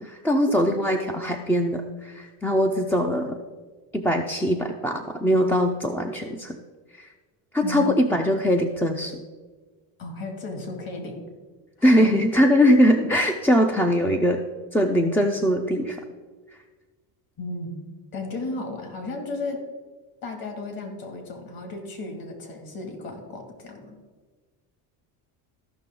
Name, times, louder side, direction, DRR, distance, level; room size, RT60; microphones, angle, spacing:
voice 1, 0.0-3.4 3.9-6.6 7.0-7.1 7.5-9.2 11.8-14.4 14.7-16.0, equal, 5° left, 4 dB, 0.4 m, -21 dB
voice 2, 7.6-8.0 10.0-11.2 11.8-12.2 17.4-17.8 18.1-19.6 20.2-24.0, left 2 dB, 45° left, 4 dB, 2.4 m, -34 dB
14.5 x 5.8 x 3.8 m, 1.4 s
supercardioid pair, 105°, 48 cm